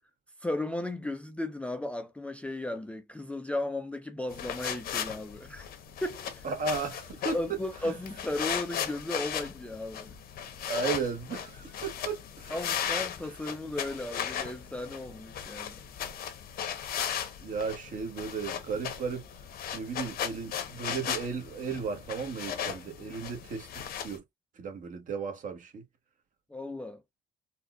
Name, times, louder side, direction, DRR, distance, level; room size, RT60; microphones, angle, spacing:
voice 1, 0.4-5.7 6.0-6.4 7.3-10.1 12.5-15.8 26.5-27.0, left 1 dB, 5° left, 0.4 m, -35 dB
sound 1, 4.3-24.2, left 9 dB, 65° left, 0.8 m, -37 dB
voice 2, 6.4-7.4 7.8-7.9 10.7-12.5 17.4-19.3 19.7-23.7 24.0-24.2 24.6-25.8, right 5 dB, 50° right, 1.1 m, -35 dB
4.2 x 2.2 x 2.2 m
cardioid pair, 110°, 17 cm